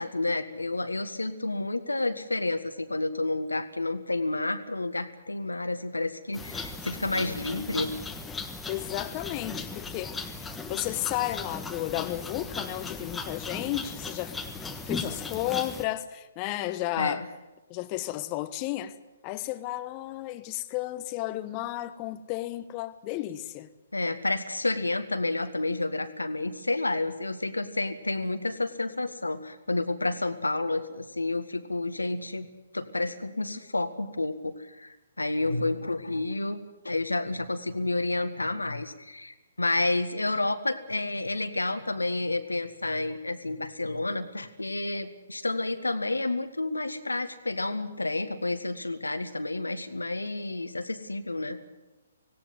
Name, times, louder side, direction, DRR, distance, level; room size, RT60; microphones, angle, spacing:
voice 1, 0.0-7.9 17.0-17.2 23.9-32.5 32.7-51.6, left 2 dB, 85° left, 1.7 m, -30 dB
sound 1, 6.3-15.8, left 4 dB, 10° left, 1.4 m, -37 dB
voice 2, 8.7-10.4 10.7-14.3 14.9-17.2 17.7-19.0 19.2-23.7, left 15 dB, 30° left, 1.2 m, -33 dB
18.0 x 17.5 x 9.7 m
figure-of-eight pair, 130°, 0 cm